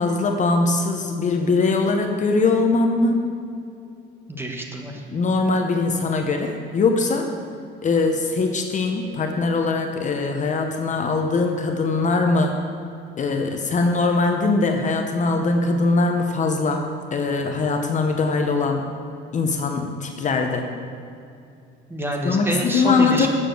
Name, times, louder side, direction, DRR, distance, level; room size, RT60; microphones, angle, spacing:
voice 1, 0.0-3.2 5.1-7.3 7.8-12.6 13.2-18.9 19.3-20.7 22.2-23.3, left 3 dB, 35° left, 4 dB, 0.8 m, -21 dB
voice 2, 4.3-5.0 21.9-23.3, equal, 10° right, 1 dB, 1.2 m, -27 dB
8.8 x 7.0 x 6.3 m, 2.5 s
cardioid pair, 125°, 21 cm